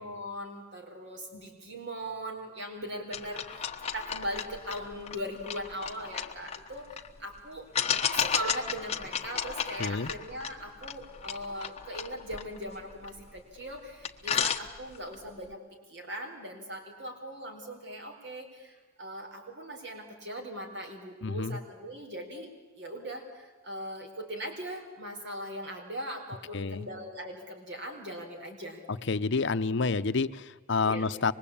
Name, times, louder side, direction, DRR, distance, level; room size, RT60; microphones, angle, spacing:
voice 1, 0.0-7.7 8.1-15.6 15.9-22.5 22.8-28.8 30.8-31.1, equal, 55° right, 3 dB, 4.4 m, -40 dB
sound 1, 3.1-7.1 7.7-13.4 13.7-13.8 14.0-15.1, left 7 dB, 30° left, 1.2 m, -33 dB
voice 2, 9.8-10.1 21.2-21.6 26.5-26.9 28.9-31.3, left 4 dB, 60° left, 12 dB, 0.7 m, -29 dB
25.0 x 21.5 x 8.6 m, 1.3 s
head